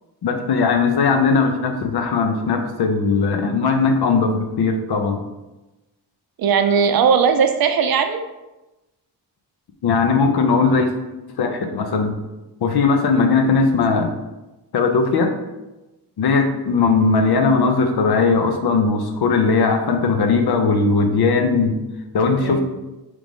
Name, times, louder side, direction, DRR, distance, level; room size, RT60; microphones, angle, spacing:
voice 1, 0.2-5.2 9.8-10.9 11.4-12.2 12.6-14.1 14.7-15.4 16.2-21.8 22.1-22.6, left 4 dB, 65° left, 5 dB, 0.6 m, -18 dB
voice 2, 6.4-8.2 22.4-22.6, right 6 dB, 60° right, 7 dB, 0.5 m, -18 dB
3.8 x 3.2 x 3.5 m, 1.0 s
wide cardioid pair, 115°, 42 cm